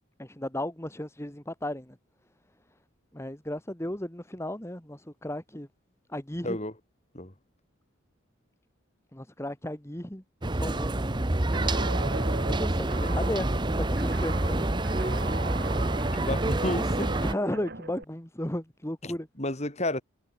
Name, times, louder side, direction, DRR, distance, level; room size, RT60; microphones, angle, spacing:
voice 1, 0.2-2.0 3.1-5.7 6.1-6.6 9.1-12.1 12.4-15.4 17.2-19.3, left 1 dB, 15° left, 1.8 m, -35 dB
sound 1, 10.4-17.3, right 1 dB, 20° right, 1.0 m, -27 dB
Guitar, 11.5-18.0, right 3 dB, 50° right, 5.1 m, -39 dB
voice 2, 16.2-17.2 19.0-20.0, left 1 dB, 35° left, 4.8 m, -31 dB
head